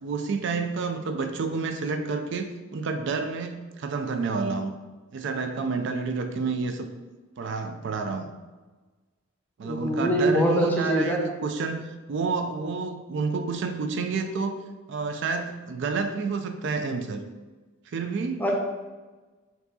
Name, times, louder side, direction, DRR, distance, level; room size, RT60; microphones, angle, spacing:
voice 1, 0.0-4.7 5.1-6.9 7.4-8.3 9.6-14.6 14.9-17.2 17.9-18.4, right 4 dB, 60° right, 7 dB, 0.4 m, -29 dB
voice 2, 9.6-11.2 18.4-18.5, equal, 10° left, -1 dB, 0.6 m, -23 dB
4.6 x 2.7 x 4.0 m, 1.3 s
head